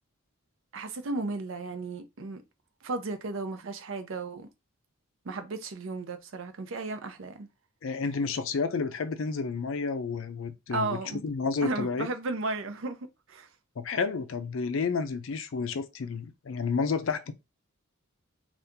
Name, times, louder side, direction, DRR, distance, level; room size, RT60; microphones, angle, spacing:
voice 1, 0.7-2.4 2.8-4.5 5.2-7.5 10.7-11.2 11.6-13.0 13.3-13.5, right 3 dB, 65° right, 0.6 m, -34 dB
voice 2, 7.8-12.1 13.8-17.3, left 4 dB, 65° left, 0.4 m, -30 dB
2.8 x 2.4 x 3.5 m
head